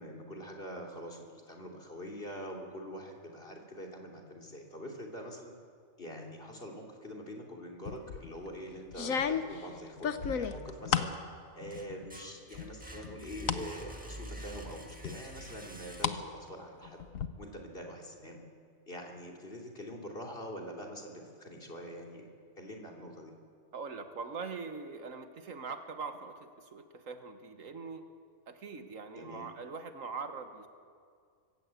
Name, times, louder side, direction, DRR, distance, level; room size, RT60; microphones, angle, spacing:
voice 1, 0.0-5.5 6.0-11.1 11.5-17.0 17.4-18.4 18.9-22.3 22.6-23.3 29.1-29.5, equal, 45° left, 0 dB, 3.2 m, -44 dB
sound 1, 7.9-8.3 8.9-11.2 11.6-12.2 12.5-13.7 14.1-14.2 15.0-16.2 16.5-17.3, left 7 dB, 85° left, 1.4 m, -33 dB
sound 2, 10.2-11.0 11.4-16.5, equal, 5° right, 1.7 m, -47 dB
voice 2, 23.7-28.0 28.5-30.7, right 4 dB, 75° right, 7 dB, 1.8 m, -42 dB
24.5 x 15.5 x 8.3 m, 2.2 s
omnidirectional pair, 1.4 m